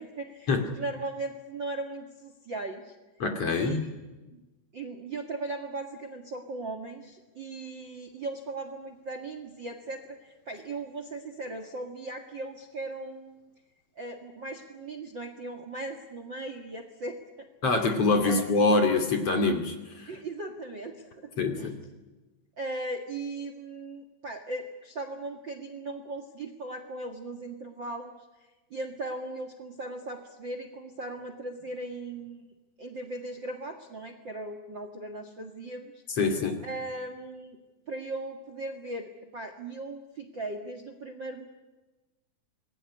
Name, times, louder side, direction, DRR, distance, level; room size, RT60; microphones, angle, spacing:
voice 1, 0.0-0.5 0.7-3.0 3.5-3.9 4.3-4.4 4.7-13.5 14.0-18.4 20.1-21.7 22.6-28.1 28.7-32.5 32.8-36.0 36.6-37.6 37.9-41.5, right 2 dB, 40° right, 7 dB, 1.9 m, -38 dB
voice 2, 3.2-3.8 17.6-20.1 21.4-21.7 36.2-36.6, left 3 dB, 45° left, 6 dB, 3.2 m, -25 dB
26.5 x 21.0 x 9.9 m, 1.1 s
omnidirectional pair, 4.4 m